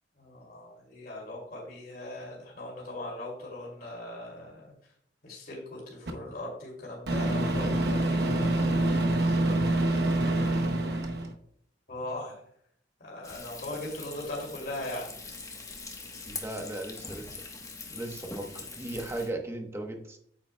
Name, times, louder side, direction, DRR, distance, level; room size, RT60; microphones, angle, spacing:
voice 1, 0.2-4.7 5.2-8.7 11.9-12.3 13.0-15.1 17.9-18.1, left 1 dB, 55° left, -3 dB, 2.8 m, -39 dB
Microwave oven, 6.1-6.2 7.1-11.3, right 1 dB, 65° right, 0.9 m, -26 dB
Frying (food), 13.2-19.3, left 3 dB, 20° left, 1.1 m, -43 dB
voice 2, 16.3-17.3 17.9-20.2, right 1 dB, 15° right, 3 dB, 0.9 m, -37 dB
8.9 x 8.2 x 2.2 m, 0.67 s
head